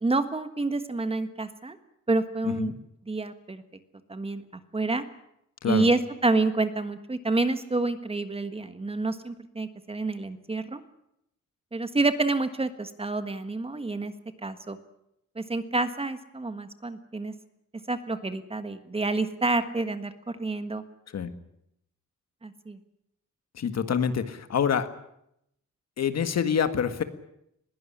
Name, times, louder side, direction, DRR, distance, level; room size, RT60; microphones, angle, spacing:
voice 1, 0.0-1.8 2.1-2.7 3.1-3.6 4.1-4.4 4.7-5.0 5.6-10.8 11.7-14.1 14.4-14.8 15.3-17.3 17.9-20.8 22.4-22.8, right 3 dB, 20° right, 10 dB, 1.5 m, -28 dB
voice 2, 23.6-24.9 26.0-27.0, left 7 dB, 55° left, 10 dB, 1.9 m, -26 dB
21.0 x 17.5 x 10.0 m, 0.78 s
wide cardioid pair, 145°, 30 cm